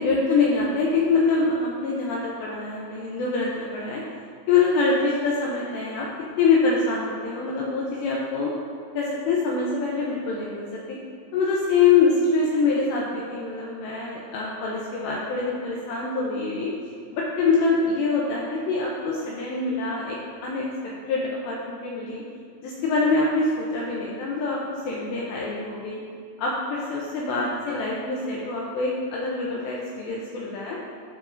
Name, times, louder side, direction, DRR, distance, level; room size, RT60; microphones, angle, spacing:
voice 1, 0.0-4.0 4.5-6.1 6.4-8.5 8.9-11.0 11.3-16.7 17.1-20.7 21.1-22.2 22.6-26.0 26.4-30.8, left 4 dB, 80° left, -4 dB, 2.5 m, -24 dB
15.5 x 5.2 x 2.6 m, 2.1 s
omnidirectional pair, 5.7 m